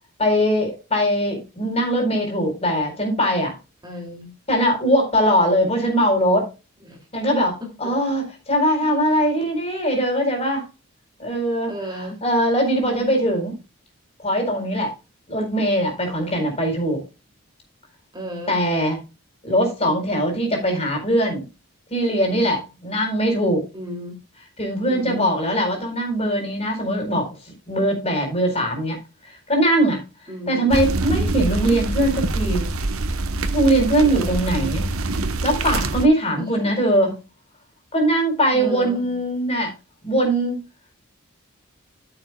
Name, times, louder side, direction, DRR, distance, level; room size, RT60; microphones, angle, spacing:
voice 1, 0.2-3.5 4.5-6.5 7.1-10.6 11.2-11.7 12.0-13.6 14.2-14.9 15.3-17.0 18.5-19.0 19.4-21.5 21.9-23.6 24.6-27.3 27.7-29.0 29.2-30.0 30.5-32.7 33.5-34.9 35.4-37.2 37.9-39.7 40.0-40.6, equal, 30° left, 4.3 m, -21 dB
voice 2, 3.8-4.3 6.8-7.1 7.6-7.9 8.8-9.0 11.7-12.2 18.1-18.6 23.7-24.2 24.9-25.3 30.3-30.7 34.0-34.5 36.4-36.5 38.5-39.2, left 1 dB, 20° right, 2.7 m, -34 dB
sound 1, 30.7-36.0, right 2 dB, 75° right, 1.1 m, -25 dB
14.5 x 7.1 x 2.3 m
head